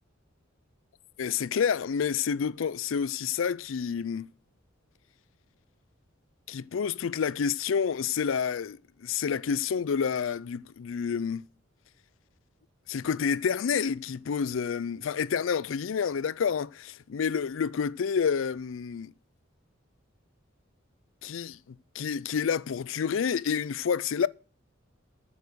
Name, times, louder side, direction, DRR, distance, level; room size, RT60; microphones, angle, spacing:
voice 1, 1.2-4.3 6.5-11.4 12.9-19.1 21.2-21.6 21.9-24.3, left 6 dB, 80° left, 0.4 m, -29 dB
9.1 x 7.2 x 6.3 m
head